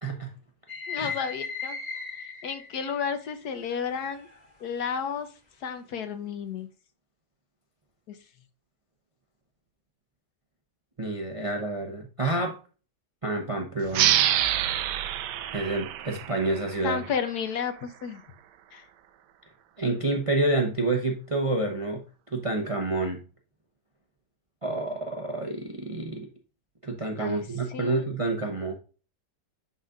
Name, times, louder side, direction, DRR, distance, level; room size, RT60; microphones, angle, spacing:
sound 1, 0.7-3.1 3.7-4.5, left 5 dB, 25° left, 1.3 m, -37 dB
voice 1, 0.9-1.8 2.4-4.3 4.6-5.3 5.6-6.7 8.1-8.2 16.8-18.2 18.7-18.8 27.2-27.5 27.7-28.0, left 6 dB, 70° left, 9 dB, 1.3 m, -32 dB
voice 2, 11.0-12.6 13.2-14.2 15.5-17.0 19.8-22.0 22.3-23.2 24.6-26.3 26.8-28.7, right 2 dB, 30° right, 2 dB, 0.6 m, -28 dB
sound 2, 13.9-17.2, right 11 dB, 80° right, 1.2 m, -26 dB
10.5 x 4.0 x 2.5 m, 0.35 s
omnidirectional pair, 1.9 m